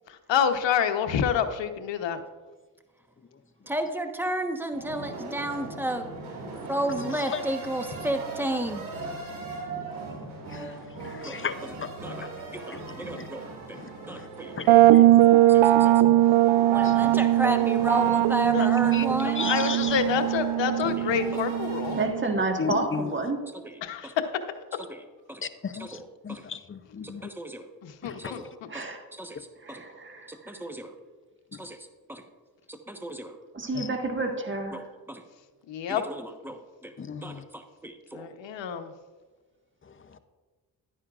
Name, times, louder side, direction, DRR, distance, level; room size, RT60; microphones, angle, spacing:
voice 1, 0.1-2.2 18.5-18.7 19.2-22.0 23.8-24.1 27.8-28.7 35.7-36.0 38.1-38.9, left 7 dB, 65° left, 8 dB, 1.0 m, -28 dB
voice 2, 3.7-6.1 6.7-8.8 11.2-11.4 12.0-13.8 14.1-15.9 16.7-19.5 21.0-21.1 23.6-24.1 24.9-25.0 25.3-25.4 25.8-26.4 27.0-27.7 28.2-28.9 29.1-29.8 30.3-31.0 31.5-31.8 32.1-32.2 32.7-33.4 34.7-35.2 35.9-36.9 37.2-38.3, right 1 dB, 5° right, 6 dB, 1.1 m, -33 dB
sound 1, 4.7-22.0, right 3 dB, 90° right, 2.6 m, -39 dB
voice 3, 7.1-7.4 9.8-9.9 10.4-12.3 12.7-13.3 13.7-14.3 14.6-15.1 16.8-17.1 18.9-19.1 19.4-20.0 22.6-23.1 25.4-27.3 28.0-28.4 33.7-33.9 37.0-37.4 40.1-40.2, left 6 dB, 25° left, 11 dB, 0.6 m, -36 dB
sound 2, 14.7-22.3, right 14 dB, 70° right, 0.5 m, -20 dB
voice 4, 21.9-23.4 28.7-29.0 29.6-30.6 33.5-34.8, right 3 dB, 25° right, 3 dB, 1.6 m, -30 dB
12.0 x 9.8 x 2.5 m, 1.3 s
cardioid pair, 70°, 47 cm